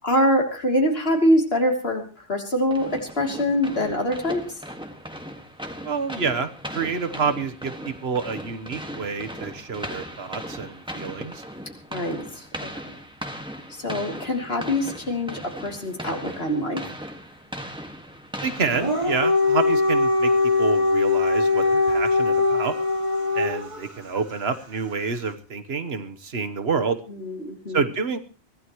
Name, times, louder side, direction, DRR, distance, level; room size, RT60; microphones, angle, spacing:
voice 1, 0.0-4.4 11.9-12.9 13.7-16.8 27.1-27.8, equal, 65° left, 1 dB, 3.4 m, -24 dB
sound 1, 2.7-19.5, equal, 5° right, 1.7 m, -38 dB
voice 2, 5.8-11.4 18.4-22.7 23.3-27.0 27.7-28.2, right 5 dB, 70° right, 10 dB, 1.4 m, -28 dB
Dog, 18.6-23.8, left 3 dB, 30° right, 2.3 m, -21 dB
24.0 x 16.0 x 3.1 m, 0.34 s
omnidirectional pair, 1.1 m